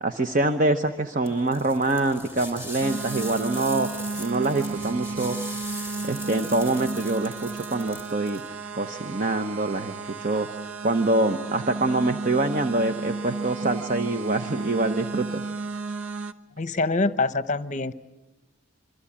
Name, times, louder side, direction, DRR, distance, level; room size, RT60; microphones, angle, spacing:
voice 1, 0.0-3.9 4.2-5.4 6.0-8.4 8.7-9.9 10.2-15.4, right 2 dB, 40° right, 7 dB, 0.9 m, -25 dB
sound 1, 1.2-8.5, left 1 dB, 10° right, 2.8 m, -40 dB
sound 2, 2.8-16.3, right 3 dB, 85° right, 1.0 m, -33 dB
voice 2, 16.6-17.9, left 3 dB, 35° left, 13 dB, 0.8 m, -25 dB
26.5 x 24.0 x 8.7 m, 1.0 s
head